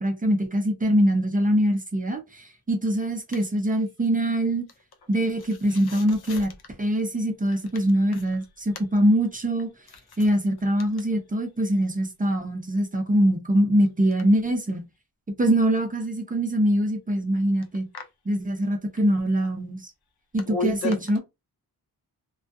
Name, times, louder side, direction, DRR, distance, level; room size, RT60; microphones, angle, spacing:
voice 1, 0.0-4.7 5.1-6.5 6.8-9.7 10.2-14.8 15.3-17.9 18.3-19.9 20.3-21.2, equal, 20° right, 0.4 m, -23 dB
voice 2, 20.5-21.2, left 2 dB, 75° left, 0.7 m, -30 dB
2.3 x 2.2 x 2.5 m
wide cardioid pair, 155°, 38 cm